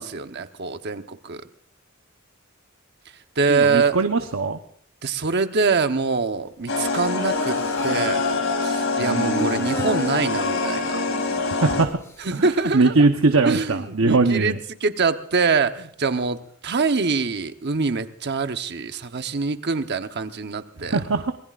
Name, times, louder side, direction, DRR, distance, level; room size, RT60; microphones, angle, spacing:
voice 1, 0.0-1.4 3.4-4.0 5.0-7.6 7.8-11.0 12.2-13.1 13.4-21.0, right 4 dB, 55° right, 8 dB, 1.0 m, -24 dB
voice 2, 3.5-4.6 9.0-9.7 11.6-12.0 12.3-14.6 20.8-21.3, right 3 dB, 80° right, 6 dB, 0.9 m, -21 dB
sound 1, 6.7-11.9, left 3 dB, 80° left, 2.7 m, -24 dB
Human voice, 7.1-8.1 9.2-11.9, equal, 15° left, 1.6 m, -33 dB
26.0 x 20.0 x 2.5 m, 0.62 s
head